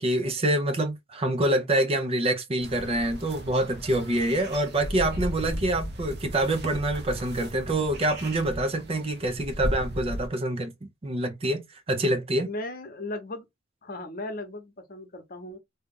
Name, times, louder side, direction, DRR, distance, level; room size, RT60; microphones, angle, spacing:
voice 1, 0.0-12.5, right 1 dB, 30° right, 0.5 m, -26 dB
sound 1, 2.6-10.3, equal, 55° right, 0.9 m, -36 dB
voice 2, 12.4-13.4 13.8-15.6, left 2 dB, 45° left, 0.9 m, -36 dB
2.8 x 2.4 x 3.6 m
head